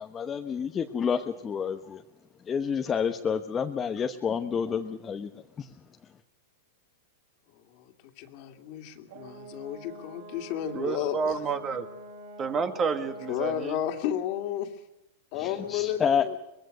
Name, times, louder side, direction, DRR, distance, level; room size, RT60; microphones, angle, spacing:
voice 1, 0.0-2.0 2.4-5.7 15.3-16.3, left 7 dB, 20° left, 5 dB, 1.0 m, -29 dB
voice 2, 7.5-11.4 13.3-14.7 15.3-16.4, left 10 dB, 50° left, 5 dB, 2.4 m, -33 dB
Brass instrument, 9.1-13.6, right 1 dB, 65° right, 7.6 m, -46 dB
voice 3, 10.7-11.9 12.4-13.8, right 5 dB, 25° right, 8 dB, 1.8 m, -30 dB
24.0 x 21.0 x 6.6 m, 0.95 s
hypercardioid pair, 135°, 0 cm